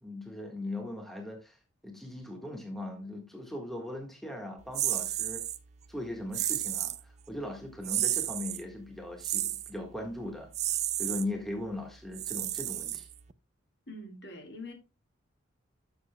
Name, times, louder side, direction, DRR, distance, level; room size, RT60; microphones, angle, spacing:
voice 1, 0.0-5.4 5.9-10.5 11.0-13.1, left 1 dB, ahead, 1.5 m, -39 dB
sound 1, 4.7-5.6 6.3-7.0 7.8-8.6 9.2-9.7 10.5-11.2 12.1-13.3, right 13 dB, 35° right, 0.4 m, -32 dB
voice 2, 13.9-14.7, left 1 dB, 55° left, 2.1 m, -44 dB
12.5 x 6.9 x 2.2 m
head